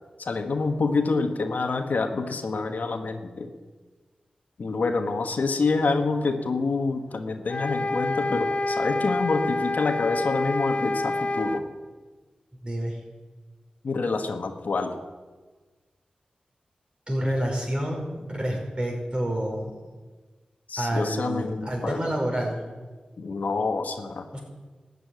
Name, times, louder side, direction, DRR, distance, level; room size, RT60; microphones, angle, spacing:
voice 1, 0.2-3.5 4.6-11.6 13.8-14.9 20.7-22.1 23.2-24.3, left 4 dB, 75° left, 5 dB, 1.3 m, -27 dB
sound 1, 7.5-11.6, left 2 dB, 50° left, 1.0 m, -27 dB
voice 2, 12.6-13.0 17.1-19.7 20.8-22.6 24.3-24.4, right 1 dB, 35° right, 0 dB, 5.2 m, -28 dB
13.0 x 6.9 x 9.5 m, 1.3 s
cardioid pair, 40°, 3 cm